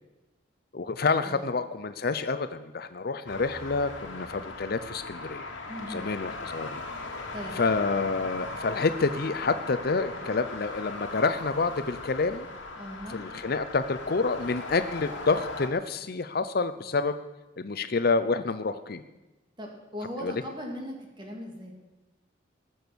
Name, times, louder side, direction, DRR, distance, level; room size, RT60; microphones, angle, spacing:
voice 1, 0.7-5.5 5.9-6.8 7.6-12.5 13.1-17.2 17.6-19.0 20.2-20.3, left 4 dB, 50° left, 11 dB, 0.6 m, -28 dB
voice 2, 1.2-1.6 5.7-6.2 7.3-7.6 12.8-13.2 19.6-21.7, equal, 25° right, 0 dB, 2.8 m, -39 dB
sound 1, 3.3-15.7, left 3 dB, 75° left, 2.1 m, -39 dB
20.5 x 7.0 x 6.2 m, 1.0 s
head